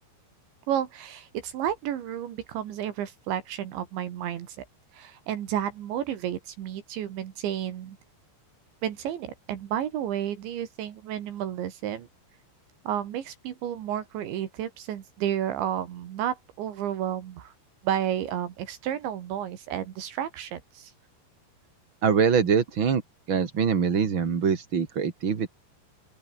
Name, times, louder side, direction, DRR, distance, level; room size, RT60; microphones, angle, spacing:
voice 1, 0.7-4.7 4.9-8.0 8.8-12.1 12.9-17.5 17.8-20.9, right 10 dB, 75° right, 4.3 m, -31 dB
voice 2, 22.0-23.0 23.3-25.5, right 6 dB, 45° right, 1.7 m, -23 dB
open air
omnidirectional pair, 5.5 m